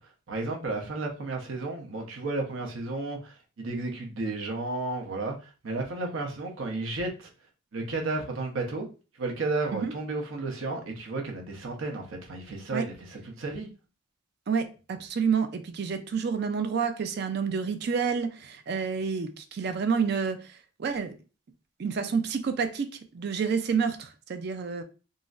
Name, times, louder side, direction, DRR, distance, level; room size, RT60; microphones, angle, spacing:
voice 1, 0.3-7.3 7.7-8.9 9.2-13.7, right 3 dB, 70° right, 0.8 m, -33 dB
voice 2, 14.5-21.1 21.8-22.9 23.1-24.8, right 6 dB, 50° right, 0.3 m, -29 dB
3.9 x 2.0 x 2.4 m
head